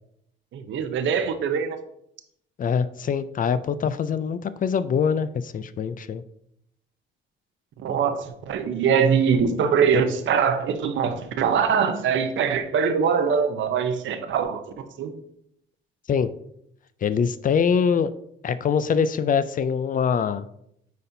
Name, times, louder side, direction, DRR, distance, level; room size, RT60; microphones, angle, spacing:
voice 1, 0.5-1.8 7.8-14.6 15.0-15.2, right 6 dB, 70° right, 9 dB, 0.8 m, -23 dB
voice 2, 2.6-6.2 16.1-16.3 17.0-18.1 18.4-20.5, left 6 dB, 45° left, 14 dB, 0.4 m, -23 dB
9.2 x 4.2 x 2.7 m, 0.74 s
cardioid pair, 90°, 20 cm